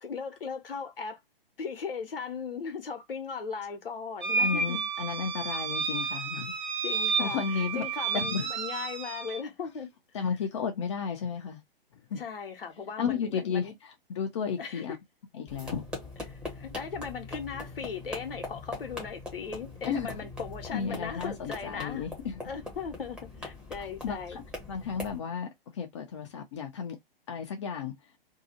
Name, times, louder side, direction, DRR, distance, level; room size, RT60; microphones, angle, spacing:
voice 1, 0.0-1.2 1.6-4.9 6.8-9.9 10.2-10.4 12.2-13.7 14.6-15.0 16.3-22.1 22.4-24.4, left 6 dB, 70° left, 0.9 m, -38 dB
sound 1, 4.2-9.4, right 4 dB, 50° right, 0.7 m, -31 dB
voice 2, 4.4-6.6 7.2-7.8 8.1-8.5 10.1-11.6 12.1-12.2 13.0-14.9 15.3-15.8 19.9-20.1 20.7-22.3 24.0-24.4 24.7-27.0 27.3-27.9, left 6 dB, 30° left, 0.5 m, -33 dB
sound 2, 15.5-25.2, left 2 dB, 5° right, 0.8 m, -42 dB
2.7 x 2.3 x 2.7 m
figure-of-eight pair, 120°, 29 cm